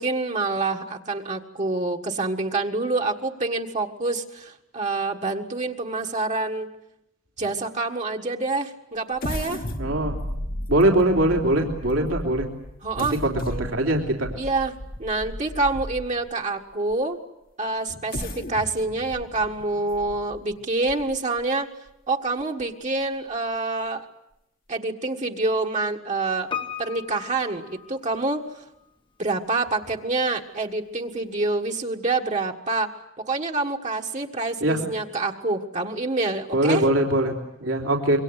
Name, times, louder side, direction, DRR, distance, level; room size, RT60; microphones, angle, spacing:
voice 1, 0.0-6.7 7.4-9.6 12.8-13.1 13.5-14.0 14.4-14.7 15.0-17.2 17.6-21.7 22.1-24.0 24.7-26.5 26.8-28.6 29.2-32.9 33.2-36.8, right 3 dB, 35° right, 1 dB, 1.6 m, -27 dB
sound 1, 9.2-16.3 16.9-17.0 17.9-21.4 21.9-22.0 22.4-22.6, left 1 dB, 45° left, 1.6 m, -35 dB
voice 2, 9.8-10.2 10.7-12.5 13.0-14.3 34.6-34.9 36.5-38.2, right 1 dB, 75° right, 1 dB, 3.5 m, -22 dB
Piano, 26.5-28.6 28.8-28.9, left 8 dB, 25° left, 1.2 m, -36 dB
27.0 x 23.5 x 8.2 m, 0.84 s
head